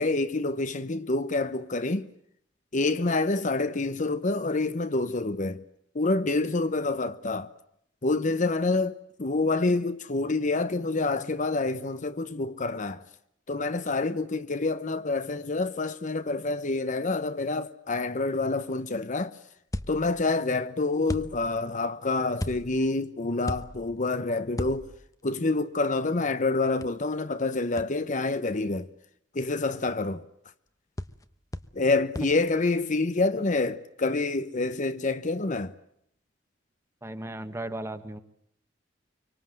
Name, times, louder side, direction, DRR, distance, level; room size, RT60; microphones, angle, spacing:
voice 1, 0.0-2.1 2.7-5.6 5.9-7.5 8.0-13.0 13.5-19.4 19.9-24.9 25.2-28.9 29.3-30.2 31.7-35.7, left 3 dB, 45° left, 0.9 m, -27 dB
sound 1, 19.7-20.4 21.1-21.7 22.4-22.9 23.4-24.1 24.5-25.2 26.8-26.9 27.8-27.9 31.0-31.2 31.5-31.9 32.1-32.4, left 1 dB, 20° left, 1.0 m, -36 dB
voice 2, 37.0-38.2, right 1 dB, 15° right, 1.5 m, -35 dB
25.0 x 24.5 x 7.7 m
head